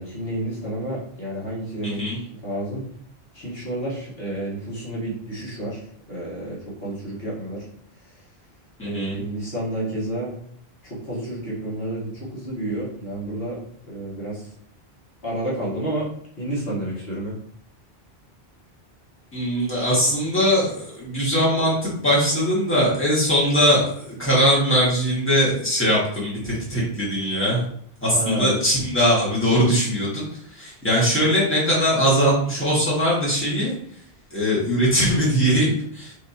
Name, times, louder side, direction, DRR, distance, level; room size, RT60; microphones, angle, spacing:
voice 1, 0.0-2.8 3.3-5.8 6.1-7.6 8.8-10.3 10.8-13.6 13.9-14.4 15.2-16.1 16.4-17.3 28.1-28.5 29.5-29.7, right 1 dB, 65° left, -7 dB, 1.8 m, -30 dB
voice 2, 1.8-2.2 8.8-9.2 19.3-27.6 28.0-33.7 34.3-36.1, equal, 10° left, -7 dB, 1.8 m, -21 dB
4.9 x 3.4 x 2.8 m, 0.64 s
omnidirectional pair, 1.1 m